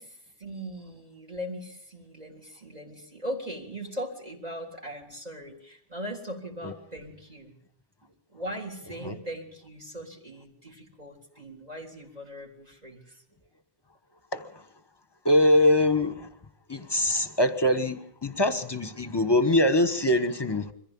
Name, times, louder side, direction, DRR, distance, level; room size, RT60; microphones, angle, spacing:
voice 1, 0.0-7.6 8.0-13.2, equal, 35° right, 3.6 m, -39 dB
voice 2, 14.3-14.7 15.2-16.3 16.7-20.7, left 1 dB, 20° left, 1.3 m, -23 dB
23.0 x 15.0 x 8.7 m
omnidirectional pair, 1.2 m